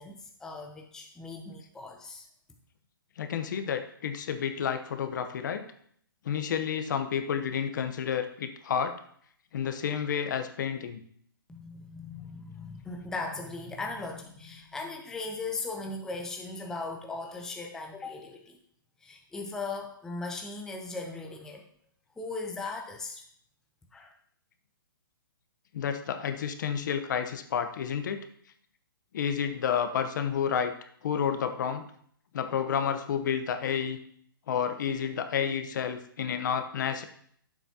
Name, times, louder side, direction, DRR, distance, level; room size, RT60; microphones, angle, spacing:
voice 1, 0.0-2.3 11.5-18.6 19.0-21.6 22.2-23.2 23.9-24.1, left 3 dB, 5° left, 2 dB, 0.6 m, -38 dB
voice 2, 3.2-5.7 6.2-8.9 9.5-11.0 25.7-28.2 29.1-30.7 31.0-31.8 32.3-34.0 34.5-37.0, left 7 dB, 55° left, 8 dB, 0.9 m, -30 dB
9.0 x 7.4 x 2.8 m, 0.64 s
hypercardioid pair, 150°, 12 cm